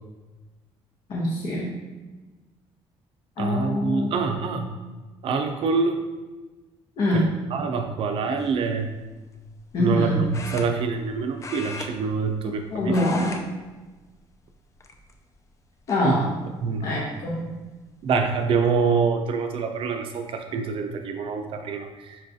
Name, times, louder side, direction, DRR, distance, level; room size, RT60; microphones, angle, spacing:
voice 1, 1.1-1.7 3.4-4.1 7.0-7.3 9.7-10.2 12.4-13.4 15.9-16.3 16.8-17.5, left 1 dB, 50° left, -5 dB, 0.8 m, -25 dB
voice 2, 3.4-4.7 5.2-6.0 7.1-7.2 7.5-8.9 9.8-13.0 16.0-16.2 16.6-16.9 18.0-22.2, right 5 dB, 55° right, 6 dB, 0.5 m, -25 dB
sound 1, 8.4-8.7 10.3-11.1 11.4-12.6 12.8-13.4 13.7-14.0 14.8-15.3 15.9-16.0 17.4-17.5 17.8-18.2, left 3 dB, 30° left, 0.4 m, -38 dB
5.7 x 2.3 x 2.6 m, 1.2 s
cardioid pair, 110°, 11 cm